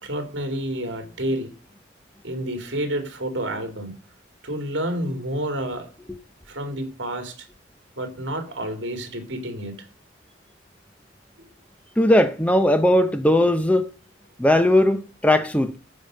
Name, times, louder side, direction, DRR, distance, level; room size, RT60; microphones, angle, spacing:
voice 1, 0.0-1.5 2.2-3.9 4.4-5.9 6.5-7.5 8.0-9.7 11.4-11.5, right 1 dB, 65° right, 2.8 m, -29 dB
voice 2, 12.0-13.9 14.4-15.8, left 1 dB, 5° left, 0.6 m, -18 dB
13.0 x 5.3 x 6.4 m
head